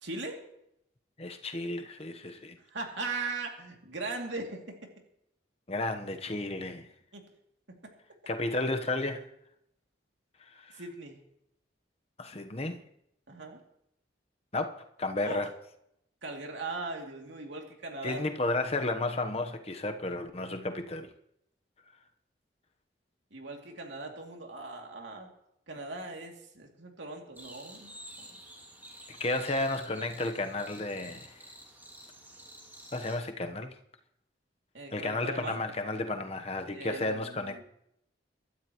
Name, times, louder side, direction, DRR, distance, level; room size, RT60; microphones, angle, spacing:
voice 1, 0.0-0.4 2.7-4.9 7.1-7.2 7.8-7.9 10.8-11.2 13.3-13.6 15.2-15.5 16.2-18.2 23.3-25.3 25.7-27.9 28.2-28.3 34.7-35.6 36.7-37.6, right 3 dB, 80° right, 2.6 m, -39 dB
voice 2, 1.2-2.6 5.7-6.9 8.3-9.3 10.5-10.8 12.2-12.8 14.5-15.5 18.0-21.1 29.1-31.4 32.9-33.7 34.9-37.6, left 2 dB, 35° left, 1.0 m, -33 dB
sound 1, 27.3-33.2, right 1 dB, 10° right, 2.5 m, -50 dB
24.0 x 12.5 x 3.0 m
head